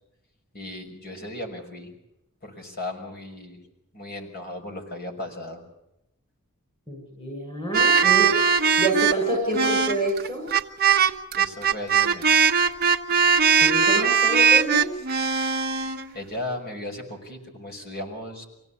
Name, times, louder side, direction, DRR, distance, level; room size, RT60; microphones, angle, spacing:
voice 1, 0.5-2.0 2.4-3.6 3.9-5.6 8.0-8.4 11.4-12.5 16.1-18.4, left 1 dB, 45° left, 3 dB, 6.0 m, -36 dB
voice 2, 6.9-8.3 8.8-10.5 13.6-14.9, right 2 dB, 25° left, 0 dB, 7.2 m, -27 dB
sound 1, 7.7-16.0, right 6 dB, 45° right, 1.2 m, -20 dB
26.5 x 17.5 x 7.3 m, 0.87 s
head